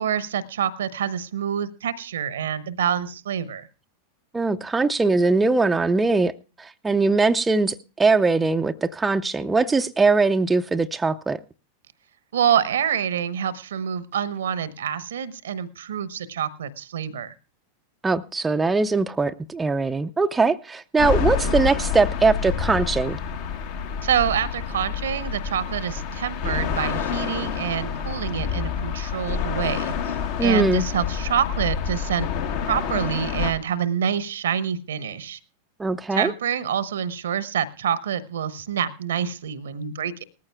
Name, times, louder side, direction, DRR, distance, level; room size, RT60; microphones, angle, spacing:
voice 1, 0.0-3.7 12.3-17.3 24.0-30.1 30.4-32.3 32.7-35.4 36.1-40.2, right 8 dB, 65° right, 17 dB, 0.9 m, -26 dB
voice 2, 4.3-6.3 6.6-11.4 18.0-23.2 30.4-30.8 35.8-36.3, right 3 dB, 10° right, 7 dB, 0.5 m, -21 dB
sound 1, 21.0-33.5, left 7 dB, 50° left, 1.1 m, -28 dB
19.0 x 14.0 x 2.2 m, 0.34 s
figure-of-eight pair, 90°, 0 cm